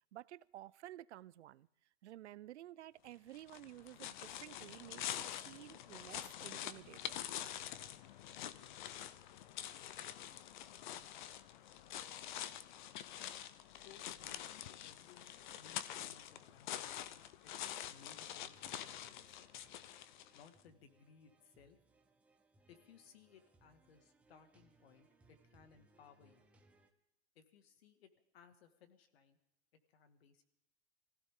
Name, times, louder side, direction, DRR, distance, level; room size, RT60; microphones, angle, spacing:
voice 1, 0.1-1.7 2.0-7.3, right 14 dB, 80° right, 0.7 m, -53 dB
sound 1, 3.3-20.5, left 11 dB, 45° left, 0.7 m, -46 dB
voice 2, 13.7-17.5 17.8-19.5 20.3-21.8 22.7-26.4 27.4-29.4 29.9-30.4, left 7 dB, 65° left, 2.1 m, -63 dB
sound 2, 17.6-26.9, right 2 dB, 5° right, 0.7 m, -71 dB
24.5 x 16.0 x 3.7 m
supercardioid pair, 165°, 33 cm